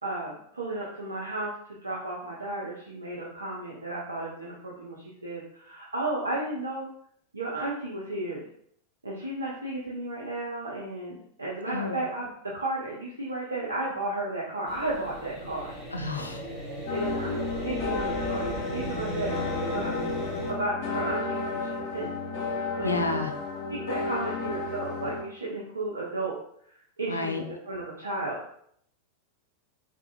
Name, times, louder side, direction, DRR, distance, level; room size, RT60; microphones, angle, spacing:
voice 1, 0.0-6.9 7.3-8.4 9.0-15.7 16.9-17.4 17.6-19.4 19.7-19.9 20.5-22.2 22.8-23.0 23.7-26.3 27.0-28.4, right 2 dB, 75° right, -5 dB, 0.5 m, -33 dB
voice 2, 11.7-12.0 15.9-16.4 22.8-23.3 27.1-27.4, left 3 dB, 80° left, 5 dB, 0.4 m, -30 dB
sound 1, 14.7-20.5, equal, 10° right, 1.5 m, -36 dB
sound 2, 16.9-25.2, left 3 dB, 45° left, 1.1 m, -32 dB
3.6 x 2.5 x 2.3 m, 0.67 s
figure-of-eight pair, 90°, 0 cm